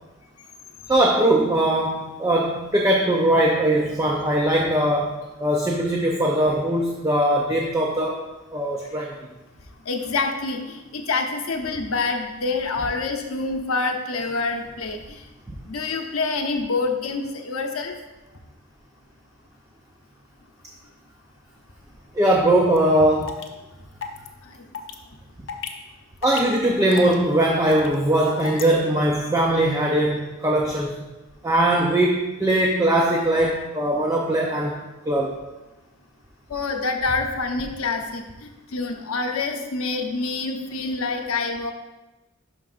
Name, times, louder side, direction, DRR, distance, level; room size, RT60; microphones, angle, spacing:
voice 1, 0.9-8.2 8.5-9.1 22.1-23.4 26.2-30.9 31.4-34.8 35.1-35.4, right 1 dB, 15° right, -1 dB, 0.5 m, -20 dB
voice 2, 9.9-15.2 15.7-17.9 24.4-24.5 36.5-41.7, left 3 dB, 85° left, 4 dB, 0.8 m, -27 dB
sound 1, 22.8-22.9 23.2-23.5 24.0-24.3 24.7-24.9 25.5-25.7 26.2-26.6 26.9-27.1 27.7-27.9 28.4-28.6, left 7 dB, 60° left, 0.6 m, -32 dB
11.5 x 4.7 x 2.5 m, 1.1 s
head